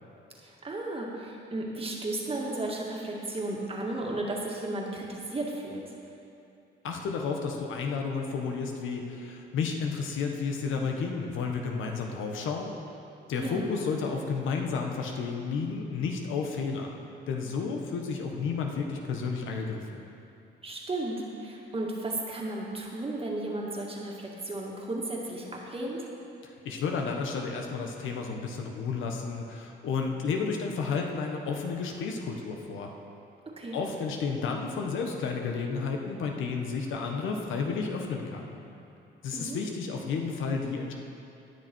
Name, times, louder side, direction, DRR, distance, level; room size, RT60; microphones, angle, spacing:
voice 1, 0.4-5.8 13.4-13.7 20.6-26.0 33.6-33.8 39.3-39.6, right 2 dB, 30° right, -2 dB, 2.1 m, -34 dB
voice 2, 6.8-12.7 13.3-17.0 17.3-20.0 26.4-32.9 33.7-38.6 39.2-40.9, left 5 dB, 80° left, 2 dB, 1.3 m, -32 dB
19.0 x 6.5 x 4.6 m, 2.7 s
cardioid pair, 90°, 20 cm